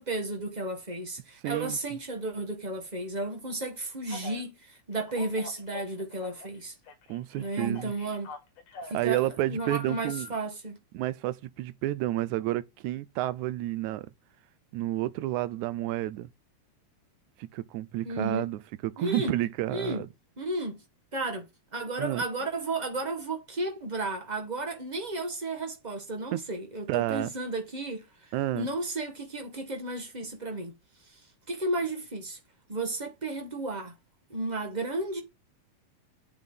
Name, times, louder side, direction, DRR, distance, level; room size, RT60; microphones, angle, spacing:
voice 1, 0.0-6.7 7.4-8.3 8.9-10.8 18.0-18.5 19.0-19.4 19.7-20.1 20.4-20.8 21.1-21.5 21.7-30.7 31.1-31.2 31.5-32.4 32.7-33.9 34.3-35.2, right 2 dB, 20° right, 1.1 m, -33 dB
voice 2, 1.4-1.8 7.1-7.9 8.9-10.3 10.9-14.1 14.7-16.3 17.4-20.1 22.0-22.2 26.3-26.4 26.9-27.3 28.3-28.7, right 15 dB, 80° right, 2.0 m, -30 dB
Telephone, 4.1-4.4 4.9-6.6 6.9-9.0 9.6-10.3, left 4 dB, 75° left, 3.1 m, -44 dB
8.4 x 6.9 x 3.9 m
omnidirectional pair, 3.5 m